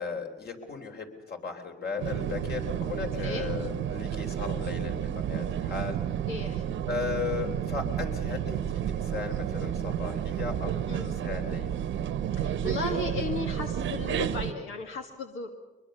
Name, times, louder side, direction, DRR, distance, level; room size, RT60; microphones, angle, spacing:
voice 1, 0.0-6.0 6.9-11.8, left 5 dB, 55° left, 3 dB, 3.7 m, -36 dB
sound 1, 2.0-14.5, right 9 dB, 75° right, 1.0 m, -31 dB
voice 2, 3.2-3.5 6.3-6.7 10.9-11.2 12.3-15.5, left 4 dB, 90° left, 5 dB, 1.7 m, -35 dB
23.5 x 22.0 x 6.8 m, 1.2 s
cardioid pair, 90°, 20 cm